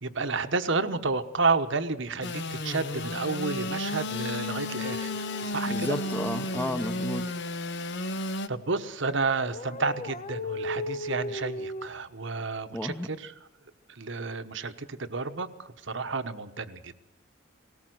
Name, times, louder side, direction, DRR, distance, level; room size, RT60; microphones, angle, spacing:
voice 1, 0.0-6.0 8.0-8.2 8.5-13.3 13.9-16.9, right 4 dB, 65° right, 10 dB, 1.2 m, -31 dB
Engine / Sawing, 2.2-8.5, left 2 dB, 60° left, 1.0 m, -33 dB
sound 1, 4.8-7.1 9.5-11.9, left 1 dB, 35° left, 0.8 m, -37 dB
voice 2, 5.7-7.3 12.7-13.1, left 1 dB, 10° left, 8 dB, 1.0 m, -32 dB
18.5 x 18.5 x 7.9 m, 0.81 s
head